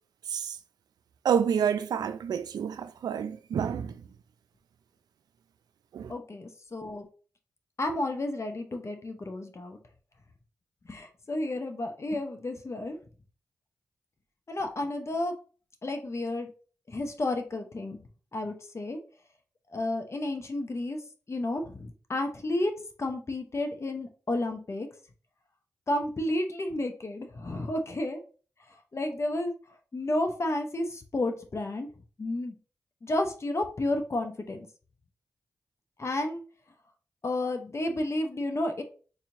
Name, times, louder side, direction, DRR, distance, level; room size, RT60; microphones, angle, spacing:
voice 1, 1.2-4.0 5.9-6.1, right 7 dB, 75° right, 0.4 m, -28 dB
voice 2, 6.1-7.1 7.8-9.8 10.9-13.0 14.5-15.3 15.8-16.5 16.9-18.0 18.3-19.0 19.7-21.0 21.3-22.7 23.0-24.9 25.9-28.2 28.9-29.5 29.9-31.9 32.2-32.6 33.0-34.7 36.0-36.4 37.2-38.8, left 1 dB, 45° left, 0.8 m, -31 dB
4.1 x 2.8 x 2.6 m
supercardioid pair, 40°, 7 cm